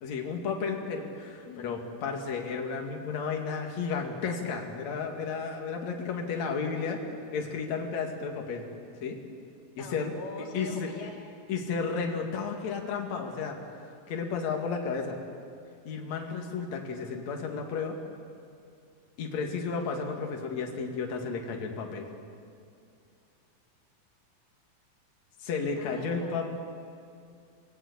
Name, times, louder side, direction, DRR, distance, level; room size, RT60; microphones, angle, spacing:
voice 1, 0.0-7.0 7.3-8.6 9.0-9.2 9.7-10.1 10.5-10.9 11.5-13.6 14.1-15.2 15.8-18.0 19.2-22.1 25.4-26.4, left 5 dB, 50° left, 2 dB, 3.2 m, -33 dB
voice 2, 1.5-1.8 9.8-11.1 25.8-26.5, left 3 dB, 75° left, -5 dB, 4.5 m, -43 dB
27.0 x 19.5 x 8.2 m, 2.4 s
omnidirectional pair, 4.4 m